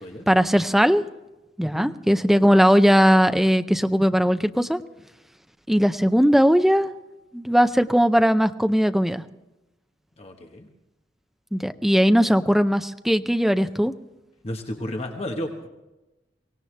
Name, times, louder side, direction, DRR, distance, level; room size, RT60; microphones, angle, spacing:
voice 1, 0.3-1.0 1.6-4.8 5.7-6.9 7.3-9.2 11.5-13.9, equal, ahead, 10 dB, 0.5 m, -19 dB
voice 2, 10.2-10.7 14.4-15.7, left 1 dB, 35° left, 3 dB, 1.2 m, -32 dB
23.5 x 17.5 x 3.3 m, 1.0 s
head